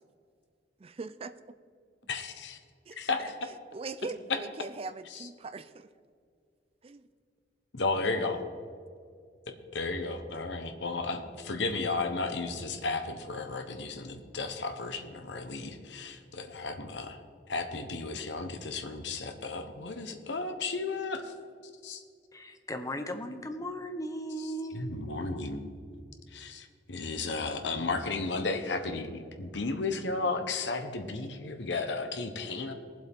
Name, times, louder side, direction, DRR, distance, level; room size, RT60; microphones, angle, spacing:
voice 1, 0.8-1.6 3.7-5.9 6.8-7.0 8.0-8.1, right 3 dB, 35° right, 13 dB, 0.4 m, -41 dB
voice 2, 2.1-2.6 3.0-3.3 4.3-4.4 5.1-5.3 7.7-8.4 9.7-17.2 17.5-21.3 21.8-22.0 24.7-25.6 26.3-32.7, left 3 dB, 70° left, 6 dB, 1.0 m, -34 dB
voice 3, 22.3-24.9, equal, 20° left, 6 dB, 0.9 m, -37 dB
19.0 x 7.7 x 3.6 m, 2.2 s
head